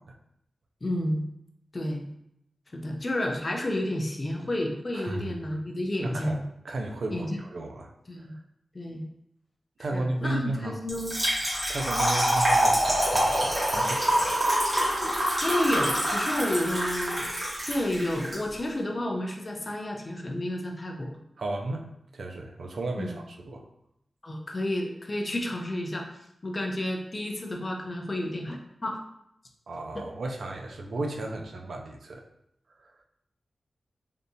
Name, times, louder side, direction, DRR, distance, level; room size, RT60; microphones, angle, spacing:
voice 1, 0.8-1.2 1.7-2.1 2.7-6.4 7.1-7.4 8.1-8.3 8.7-9.0 9.9-11.1 15.4-17.3 17.7-21.1 23.0-23.1 24.2-26.1 26.4-29.0, left 1 dB, 30° left, 2 dB, 0.4 m, -30 dB
voice 2, 4.9-5.4 6.0-7.9 8.2-8.4 9.8-10.8 11.7-14.3 21.4-21.9 22.1-23.6 29.7-32.2 32.8-32.9, right 2 dB, 70° right, 2 dB, 0.4 m, -34 dB
Trickle dribble / Fill (with liquid), 10.9-18.4, equal, 25° right, 1.4 m, -25 dB
3.4 x 2.7 x 2.7 m, 0.78 s
wide cardioid pair, 125°, 0 cm